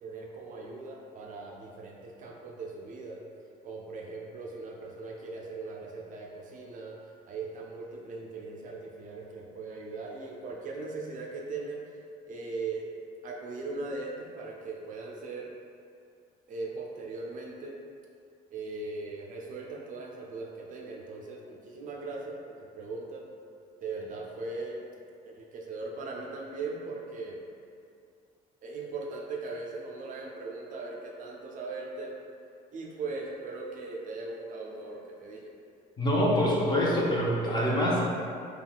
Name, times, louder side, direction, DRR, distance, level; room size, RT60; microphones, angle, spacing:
voice 1, 0.0-3.2 3.6-7.0 7.3-11.9 12.3-12.9 13.2-15.5 16.5-17.8 18.5-23.3 23.8-24.8 25.3-27.4 28.6-32.2 32.7-35.5, right 3 dB, 50° right, -1 dB, 0.4 m, -39 dB
voice 2, 36.0-38.0, equal, 25° left, -5 dB, 0.6 m, -25 dB
3.6 x 2.3 x 2.2 m, 2.4 s
cardioid pair, 110°, 17 cm